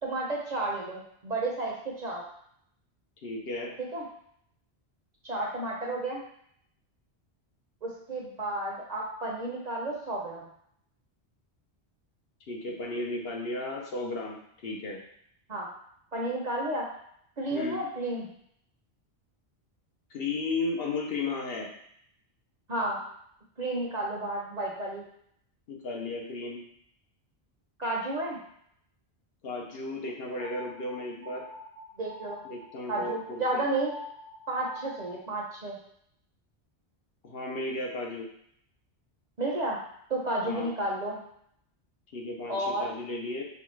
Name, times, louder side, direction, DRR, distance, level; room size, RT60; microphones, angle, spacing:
voice 1, 0.0-2.2 3.8-4.0 5.2-6.2 7.8-10.5 15.5-15.7 16.1-16.9 17.4-18.3 22.7-23.0 23.6-25.0 27.8-28.4 32.0-32.4 32.9-33.9 34.5-35.8 39.4-39.8 40.1-41.2 42.5-42.9, right 2 dB, 45° right, -2 dB, 0.8 m, -32 dB
voice 2, 3.2-3.7 12.5-15.0 17.5-17.8 20.1-21.7 25.7-26.6 29.4-31.4 32.4-33.7 37.2-38.3 40.4-40.7 42.1-43.4, left 2 dB, 65° left, -1 dB, 1.0 m, -34 dB
sound 1, 30.4-35.3, left 1 dB, 75° right, 0.8 m, -45 dB
5.3 x 2.4 x 3.1 m, 0.69 s
omnidirectional pair, 1.1 m